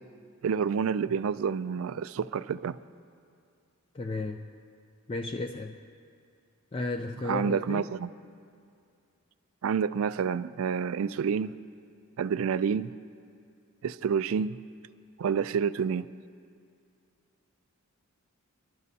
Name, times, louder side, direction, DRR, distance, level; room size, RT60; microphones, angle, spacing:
voice 1, 0.4-2.8 7.3-8.1 9.6-11.5 12.2-12.9 13.8-14.6 15.2-16.1, right 6 dB, 65° right, 16 dB, 0.3 m, -28 dB
voice 2, 3.9-4.4 5.1-5.8 6.7-7.9, left 2 dB, 25° left, 4 dB, 0.4 m, -33 dB
26.5 x 12.0 x 2.8 m, 2.4 s
head